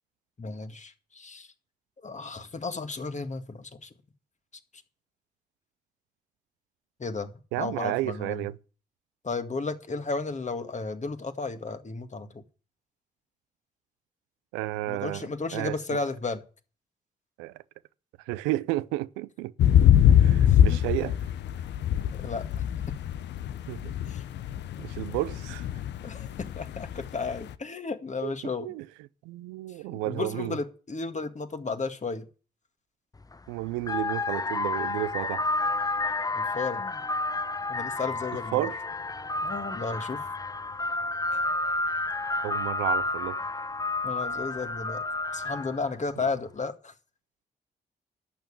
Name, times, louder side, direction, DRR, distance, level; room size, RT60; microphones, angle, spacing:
voice 1, 0.4-1.5 2.0-3.9 7.0-8.5 9.2-12.4 14.9-16.4 20.5-20.8 22.1-22.5 22.9-23.0 24.1-24.2 26.0-28.7 29.9-32.3 36.3-37.0 37.7-38.7 39.4-40.2 44.0-45.0 45.3-46.9, left 4 dB, 40° left, 2.0 m, -34 dB
voice 2, 7.5-8.6 14.5-16.0 17.4-17.5 18.3-19.5 20.0-21.2 23.7-23.9 24.8-25.7 28.2-28.9 29.2-30.5 33.5-35.4 38.5-38.8 42.4-43.4, right 17 dB, 90° right, 0.5 m, -32 dB
sound 1, 19.6-27.5, left 10 dB, 75° left, 0.7 m, -23 dB
sound 2, 33.2-33.4 33.8-45.9, left 2 dB, 20° left, 0.6 m, -30 dB
11.5 x 6.9 x 8.9 m
hypercardioid pair, 40°, 19 cm